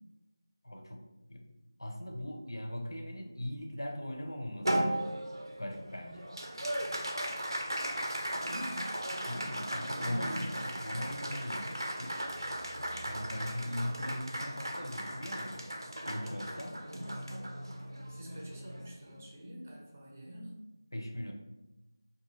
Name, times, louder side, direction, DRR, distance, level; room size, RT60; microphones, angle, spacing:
voice 1, 0.6-1.4 1.8-5.0 5.6-6.3 9.3-12.2 13.1-15.7 16.0-16.8 20.9-21.3, left 1 dB, 80° left, 2 dB, 0.5 m, -39 dB
Applause, 4.6-19.3, right 1 dB, 85° right, 0.4 m, -37 dB
voice 2, 8.4-8.8 9.4-10.8 16.8-17.2 18.1-20.6, equal, 30° right, -2 dB, 0.5 m, -45 dB
2.5 x 2.3 x 3.0 m, 1.0 s
figure-of-eight pair, 170°, 2 cm